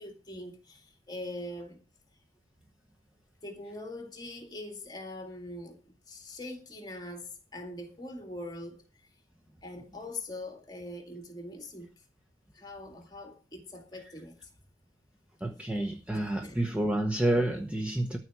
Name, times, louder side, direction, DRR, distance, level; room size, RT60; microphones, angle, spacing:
voice 1, 0.0-1.8 3.4-8.8 9.6-11.9 12.5-14.5 16.1-16.6, left 1 dB, 20° left, 2.2 m, -42 dB
voice 2, 15.4-18.2, right 1 dB, 5° right, 0.9 m, -29 dB
13.5 x 4.7 x 8.3 m
head